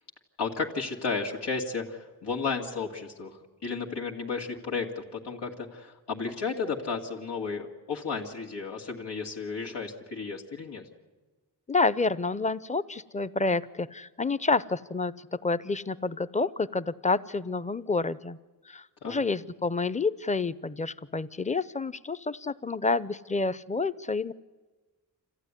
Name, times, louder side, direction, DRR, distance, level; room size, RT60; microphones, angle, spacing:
voice 1, 0.4-10.8 19.0-19.2, left 4 dB, 90° left, 0 dB, 2.3 m, -33 dB
voice 2, 11.7-18.4 18.7-24.3, left 3 dB, 20° left, 16 dB, 0.7 m, -29 dB
26.5 x 15.0 x 9.9 m, 1.2 s
cardioid pair, 75°, 40 cm